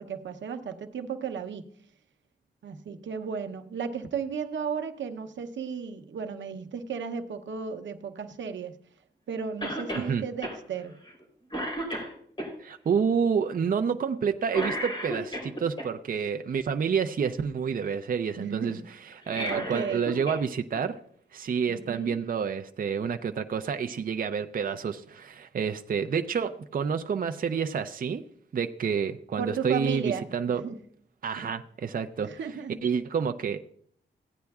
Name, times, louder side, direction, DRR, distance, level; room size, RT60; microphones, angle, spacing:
voice 1, 0.0-1.6 2.6-8.8 9.3-10.9 18.4-18.8 19.4-20.1 21.7-22.1 29.4-30.3 30.6-30.8 31.4-31.5 32.2-32.8, right 6 dB, 90° right, 6 dB, 0.8 m, -34 dB
Cough, 9.6-10.1 10.4-10.6 11.0-11.2 11.5-12.5 14.5-15.9 19.1-20.4 20.7-20.8 21.9-22.0, equal, 25° left, 3.5 m, -33 dB
voice 2, 12.6-21.0 21.3-28.2 28.5-30.6 31.2-32.3 32.8-33.6, right 6 dB, 50° right, 8 dB, 0.5 m, -29 dB
16.0 x 9.6 x 2.3 m, 0.62 s
wide cardioid pair, 110°, 19 cm